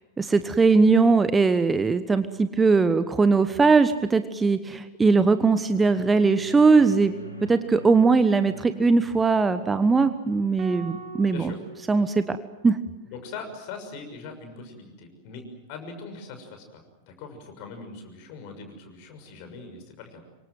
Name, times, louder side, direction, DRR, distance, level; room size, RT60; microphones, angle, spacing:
voice 1, 0.2-7.1 7.4-11.5 11.9-12.4 12.6-12.8, right 4 dB, 15° right, 11 dB, 1.1 m, -20 dB
sound 1, 5.2-11.8, right 1 dB, 85° left, 3.8 m, -43 dB
sound 2, 10.6-12.9, right 4 dB, 35° right, 4.9 m, -43 dB
voice 2, 13.0-20.2, left 4 dB, 45° left, 5 dB, 6.5 m, -41 dB
26.5 x 24.5 x 7.8 m, 0.99 s
figure-of-eight pair, 90°, 0 cm